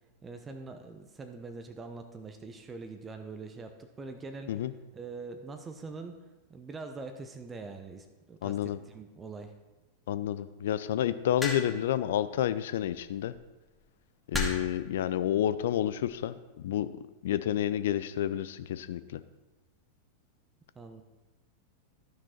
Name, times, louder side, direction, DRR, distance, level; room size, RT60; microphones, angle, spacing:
voice 1, 0.2-4.7 4.9-6.2 6.5-9.5 20.7-21.0, right 3 dB, 20° right, 6 dB, 0.8 m, -43 dB
voice 2, 8.4-8.8 10.1-13.3 14.3-16.9 17.2-19.2, left 11 dB, 55° left, 14 dB, 0.4 m, -30 dB
sound 1, 11.4-11.9 13.1-13.4 14.3-14.8 15.8-16.1, left 3 dB, 10° left, 1.8 m, -33 dB
12.5 x 6.1 x 4.4 m, 1.1 s
figure-of-eight pair, 90°, 0 cm